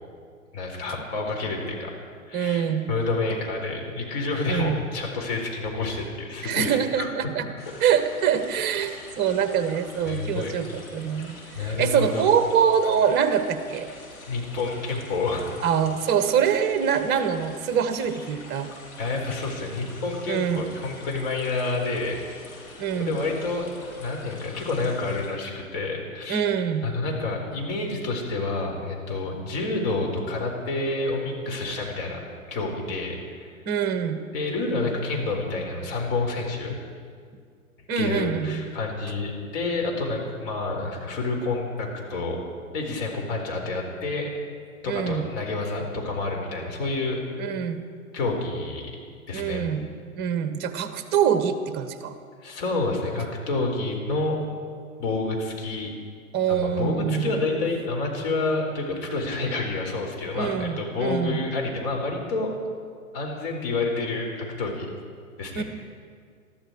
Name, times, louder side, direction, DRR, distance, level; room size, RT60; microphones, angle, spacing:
voice 1, 0.5-1.9 2.3-7.1 10.1-10.5 11.5-12.3 14.3-15.4 19.0-22.2 22.9-23.7 24.0-26.4 26.8-32.2 32.5-33.5 34.3-36.7 37.9-42.4 42.7-44.3 44.8-47.2 48.1-48.9 49.3-49.6 52.4-54.4 55.0-55.9 56.5-62.6 63.1-64.9 65.4-65.6, left 3 dB, 45° left, 0 dB, 4.4 m, -28 dB
voice 2, 2.3-2.9 4.5-4.8 6.4-7.4 7.8-13.9 15.6-18.7 20.3-20.6 22.8-23.2 26.3-26.9 33.7-34.2 37.9-38.6 44.9-45.3 47.4-47.8 49.3-49.9 50.2-52.1 56.3-57.4 60.3-61.4 65.5-65.6, right 8 dB, 25° right, 9 dB, 1.2 m, -24 dB
sound 1, 7.6-25.3, left 2 dB, 80° left, 5.4 m, -45 dB
21.5 x 13.5 x 4.7 m, 2.1 s
hypercardioid pair, 120°, 42 cm